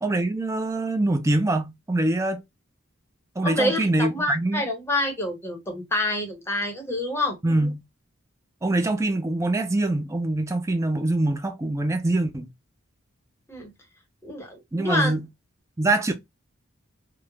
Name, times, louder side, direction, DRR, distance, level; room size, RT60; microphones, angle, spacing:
voice 1, 0.0-2.4 3.4-4.6 7.4-7.8 8.6-12.5 14.7-15.3 15.8-16.1, right 2 dB, 15° right, 0.4 m, -24 dB
voice 2, 3.4-7.4 13.5-13.7 14.2-15.1, left 1 dB, 10° left, 0.7 m, -27 dB
3.0 x 2.0 x 2.2 m
head